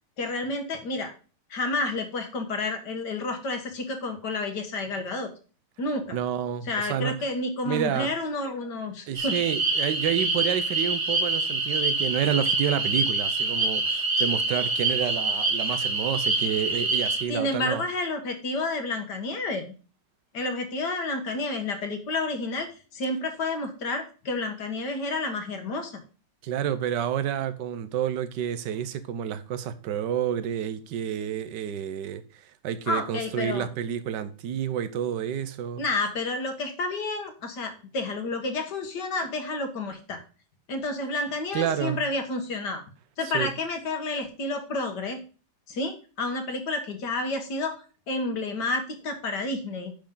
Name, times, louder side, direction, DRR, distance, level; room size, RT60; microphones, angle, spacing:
voice 1, 0.2-1.1 1.5-5.3 5.8-6.2 6.7-9.4 17.3-19.6 20.3-26.0 32.9-33.7 35.8-40.2 40.7-42.8 43.2-45.2 45.7-49.9, left 2 dB, 65° left, 2.0 m, -30 dB
voice 2, 6.1-7.3 7.6-8.1 9.1-17.8 26.4-35.8 41.5-42.0 43.2-43.5, right 9 dB, 70° right, 1.4 m, -29 dB
sound 1, 9.1-17.2, right 3 dB, 25° right, 0.8 m, -26 dB
10.0 x 6.2 x 3.9 m
omnidirectional pair, 2.0 m